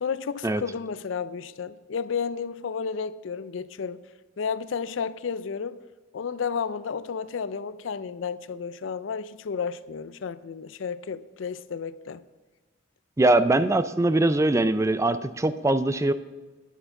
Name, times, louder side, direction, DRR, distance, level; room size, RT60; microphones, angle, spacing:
voice 1, 0.0-4.0 4.4-5.8 6.1-12.2, left 6 dB, 75° left, 0.4 m, -32 dB
voice 2, 13.2-16.1, right 2 dB, 15° right, 0.4 m, -22 dB
10.0 x 8.0 x 5.8 m
head